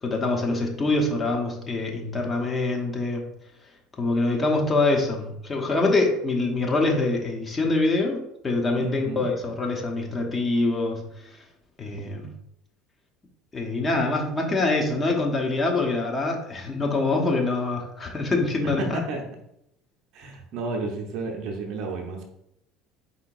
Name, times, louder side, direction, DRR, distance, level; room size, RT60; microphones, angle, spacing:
voice 1, 0.0-3.3 4.0-11.0 11.8-12.3 13.5-19.0, left 2 dB, 25° left, 0 dB, 1.0 m, -25 dB
voice 2, 8.8-9.3 18.6-19.2 20.1-22.2, right 2 dB, 55° right, 2 dB, 0.8 m, -31 dB
4.3 x 3.7 x 2.6 m, 0.79 s
figure-of-eight pair, 65°, 0 cm